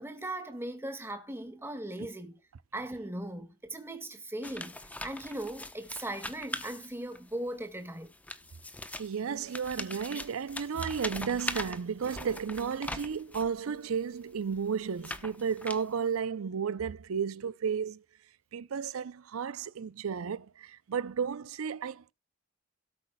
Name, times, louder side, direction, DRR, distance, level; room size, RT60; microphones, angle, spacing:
voice 1, 0.0-2.3 2.7-8.1, right 1 dB, 10° right, 1.7 m, -39 dB
sound 1, 4.4-7.3 8.1-13.6 14.2-16.2, left 2 dB, 5° left, 0.8 m, -41 dB
voice 2, 9.0-18.0 18.5-22.1, right 6 dB, 80° right, 0.5 m, -33 dB
18.0 x 8.2 x 2.3 m
head